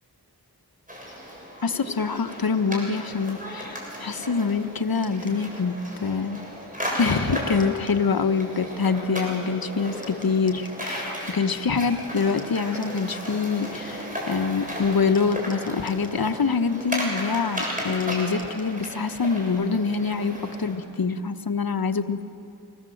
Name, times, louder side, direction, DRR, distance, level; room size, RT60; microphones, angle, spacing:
sound 1, 0.9-20.8, equal, 20° right, 7.3 m, -35 dB
voice 1, 1.6-6.4 7.0-22.2, left 5 dB, 65° left, 9 dB, 1.2 m, -25 dB
sound 2, 5.0-5.4 7.6-8.0 10.0-10.8 12.4-13.1 15.1-16.2 17.6-18.8, left 2 dB, 20° left, 4.9 m, -49 dB
26.0 x 19.0 x 7.9 m, 2.5 s
wide cardioid pair, 55°, 39 cm